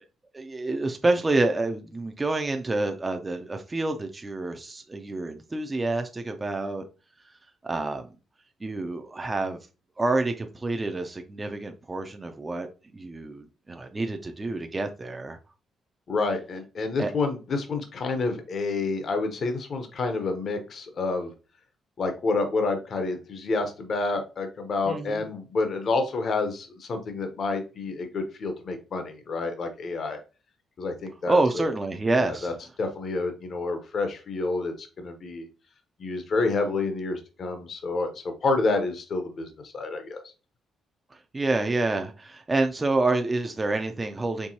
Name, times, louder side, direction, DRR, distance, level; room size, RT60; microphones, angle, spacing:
voice 1, 0.3-6.9 7.6-8.1 8.6-9.6 10.0-12.7 12.9-15.4 17.0-17.1 24.9-25.2 31.3-32.5 41.1-44.5, right 2 dB, 15° right, 0.4 m, -28 dB
voice 2, 16.1-21.3 22.0-30.2 30.8-31.6 32.2-32.5 32.8-35.5 36.0-40.2, left 3 dB, 45° left, 0.8 m, -29 dB
4.6 x 3.3 x 2.7 m
cardioid pair, 140°, 0 cm